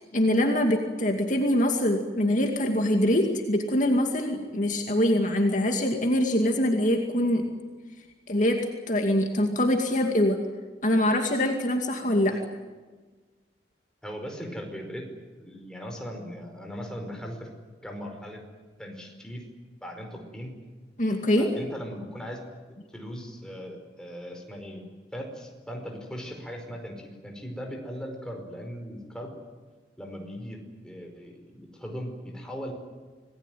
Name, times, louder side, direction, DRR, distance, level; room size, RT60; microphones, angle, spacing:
voice 1, 0.1-7.5 8.3-10.4 10.8-12.4 21.0-21.5, left 1 dB, 45° left, 3 dB, 2.4 m, -24 dB
voice 2, 14.0-15.1 15.4-17.5 17.8-18.4 18.8-19.4 19.8-20.5 21.4-22.4 22.9-24.8 25.1-29.3 30.0-32.7, equal, 5° left, 2 dB, 5.0 m, -38 dB
27.5 x 19.5 x 9.3 m, 1.3 s
head